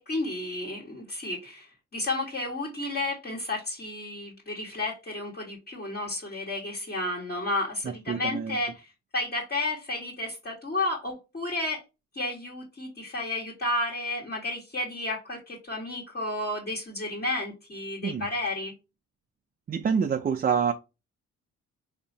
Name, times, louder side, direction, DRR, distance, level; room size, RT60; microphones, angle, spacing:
voice 1, 0.0-1.7 1.9-11.8 12.1-18.7, left 2 dB, 30° left, 1.5 m, -32 dB
voice 2, 7.8-8.6 18.0-18.3 19.7-20.7, right 6 dB, 30° right, 0.4 m, -27 dB
4.2 x 2.6 x 2.7 m
cardioid pair, 110°, 30 cm